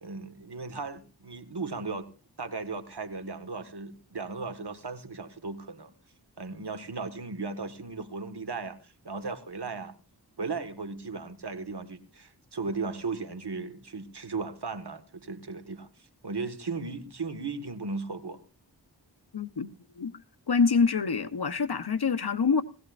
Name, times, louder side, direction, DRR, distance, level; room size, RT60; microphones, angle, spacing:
voice 1, 0.0-2.1 2.4-5.9 6.4-9.9 10.4-18.4, right 4 dB, 70° right, 1.7 m, -36 dB
voice 2, 19.3-20.1 20.5-22.6, left 5 dB, 65° left, 1.0 m, -26 dB
19.5 x 16.5 x 2.5 m
wide cardioid pair, 45°, 42 cm